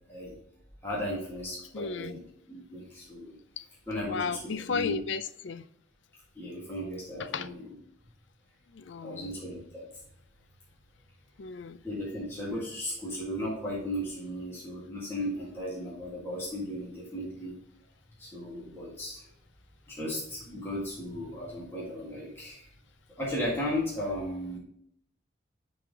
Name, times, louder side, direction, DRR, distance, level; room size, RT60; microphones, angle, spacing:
voice 1, 0.8-3.4 3.9-4.4 4.7-5.0 6.4-7.6 9.0-9.9 11.8-17.5 18.2-19.2 19.9-22.7 23.1-24.6, left 1 dB, 10° left, 1.8 m, -35 dB
voice 2, 1.7-2.2 3.6-3.7 3.9-5.7 7.2-7.5 8.7-9.4 11.4-11.8, left 5 dB, 75° left, 0.5 m, -34 dB
10.5 x 4.2 x 3.6 m
head